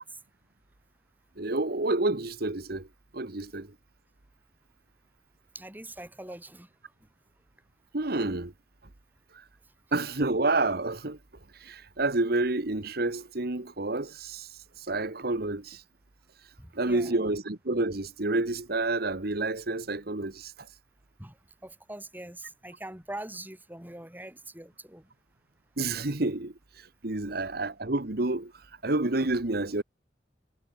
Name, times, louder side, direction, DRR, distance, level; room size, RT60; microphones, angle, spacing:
voice 1, 1.4-2.9 3.1-3.7 7.9-8.5 9.9-11.2 11.6-14.5 14.9-15.8 16.7-20.5 25.8-26.5 27.0-28.5 28.8-29.8, right 2 dB, 60° right, 1.5 m, -29 dB
voice 2, 5.5-6.7 16.6-17.2 21.2-21.4 21.6-25.0, right 1 dB, 10° right, 5.3 m, -43 dB
head